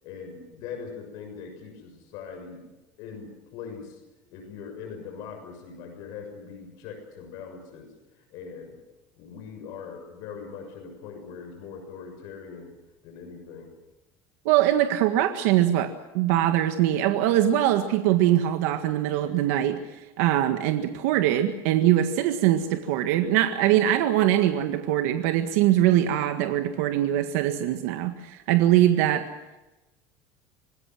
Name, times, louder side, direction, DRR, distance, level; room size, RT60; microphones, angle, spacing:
voice 1, 0.0-2.6 3.0-4.0 4.3-8.8 9.2-12.7 13.0-13.7, left 6 dB, 60° left, 4 dB, 6.6 m, -41 dB
voice 2, 14.5-19.8 20.2-29.3, right 12 dB, 80° right, 6 dB, 1.7 m, -22 dB
26.0 x 20.0 x 7.8 m, 1.0 s
cardioid pair, 165°, 8 cm